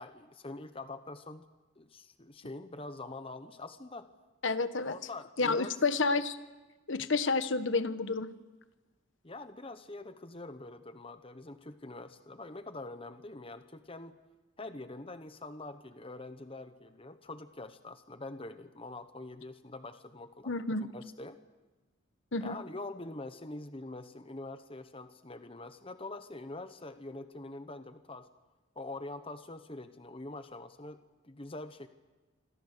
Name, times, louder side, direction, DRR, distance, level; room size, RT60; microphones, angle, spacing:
voice 1, 0.0-1.4 1.8-4.1 4.8-5.7 9.2-14.2 14.6-20.5 20.9-21.4 22.4-28.3 28.8-31.0 31.2-31.9, left 2 dB, 30° left, 10 dB, 1.1 m, -44 dB
voice 2, 4.4-4.9 5.4-6.4 6.9-8.3 20.5-20.9 22.3-22.6, left 3 dB, 70° left, 11 dB, 1.2 m, -30 dB
26.5 x 26.5 x 6.8 m, 1.2 s
head